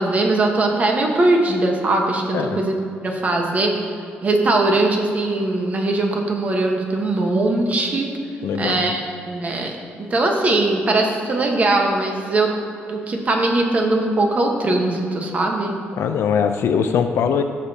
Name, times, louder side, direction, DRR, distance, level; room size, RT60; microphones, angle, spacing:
voice 1, 0.0-2.7 3.0-8.1 8.6-9.8 10.1-12.5 12.9-15.8, right 2 dB, 35° right, 1 dB, 1.3 m, -20 dB
voice 2, 8.4-8.9 16.0-17.4, left 7 dB, 75° left, 7 dB, 0.6 m, -21 dB
14.5 x 6.7 x 2.9 m, 2.5 s
cardioid pair, 120°, 4 cm